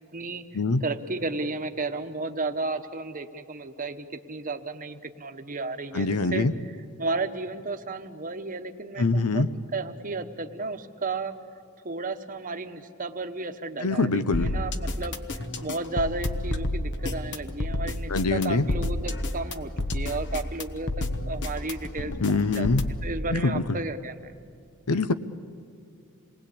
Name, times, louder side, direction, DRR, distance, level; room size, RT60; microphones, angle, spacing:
voice 1, 0.1-0.4 0.8-6.4 7.0-11.3 11.8-20.9 21.3-22.7 23.0-24.3, right 3 dB, 35° right, 7 dB, 1.1 m, -33 dB
voice 2, 5.9-6.5 9.0-9.5 13.8-14.5 18.1-18.7 22.2-22.8 23.3-23.6 24.9-25.1, left 3 dB, 85° left, 13 dB, 0.8 m, -24 dB
sound 1, 14.3-23.1, left 1 dB, 55° left, 1.1 m, -30 dB
27.5 x 20.0 x 8.5 m, 2.4 s
head